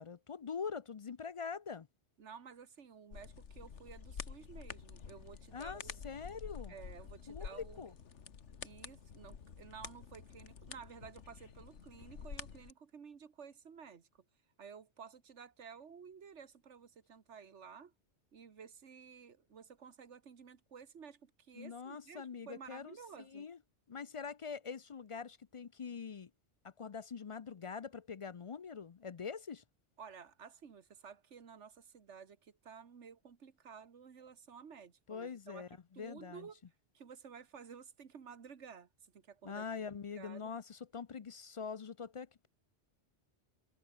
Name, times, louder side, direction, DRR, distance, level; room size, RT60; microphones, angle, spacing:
voice 1, 0.0-1.9 5.5-6.7 7.3-7.9 21.5-23.6 23.9-26.3 26.6-29.6 35.1-36.5 39.4-42.5, left 6 dB, 45° left, 0.4 m, -44 dB
voice 2, 2.2-6.0 6.7-7.9 8.6-14.2 14.6-17.9 18.3-23.5 30.0-35.7 35.9-36.6 36.9-40.5, right 6 dB, 85° right, 1.7 m, -53 dB
sound 1, 3.1-12.7, left 6 dB, 90° left, 1.7 m, -49 dB
omnidirectional pair, 1.2 m